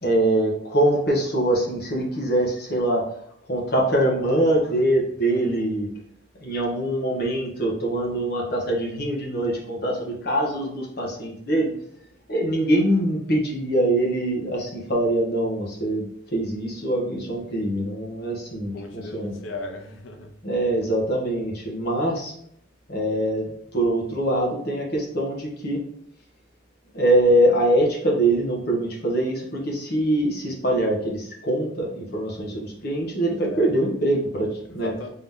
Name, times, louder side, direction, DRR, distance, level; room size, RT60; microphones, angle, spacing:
voice 1, 0.0-3.0 3.5-5.9 6.4-11.7 12.3-19.3 20.4-22.3 22.9-25.8 26.9-34.9, right 1 dB, 50° left, -2 dB, 1.1 m, -23 dB
voice 2, 5.2-5.6 18.6-20.3 33.3-34.1 34.6-35.1, left 2 dB, 75° left, 3 dB, 0.7 m, -38 dB
3.7 x 2.9 x 3.5 m, 0.69 s
head